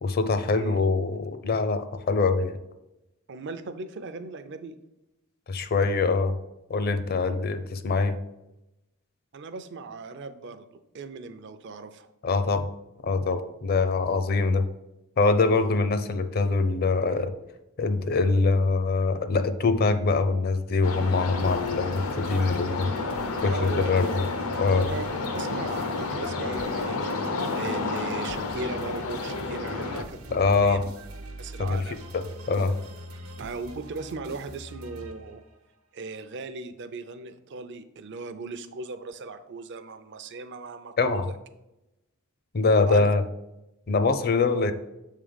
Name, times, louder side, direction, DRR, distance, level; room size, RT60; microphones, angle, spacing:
voice 1, 0.0-2.6 5.5-6.4 6.7-8.2 12.2-12.7 13.0-14.7 15.2-17.3 17.8-22.9 23.4-24.2 24.6-24.9 30.3-30.8 31.7-31.8 32.1-32.8 41.0-41.3 42.5-43.2 43.9-44.7, left 3 dB, 45° left, 10 dB, 0.5 m, -24 dB
voice 2, 3.3-4.8 9.3-10.7 10.9-12.1 15.5-15.7 23.4-24.1 24.7-25.1 25.3-27.0 27.5-30.8 31.4-32.0 33.4-35.4 35.9-41.3 42.9-43.1, right 3 dB, 55° right, 10 dB, 0.5 m, -38 dB
sound 1, 20.8-30.0, left 3 dB, 85° left, 0.8 m, -31 dB
sound 2, 21.4-35.7, right 1 dB, 90° right, 1.0 m, -44 dB
7.2 x 3.7 x 5.1 m, 0.94 s
head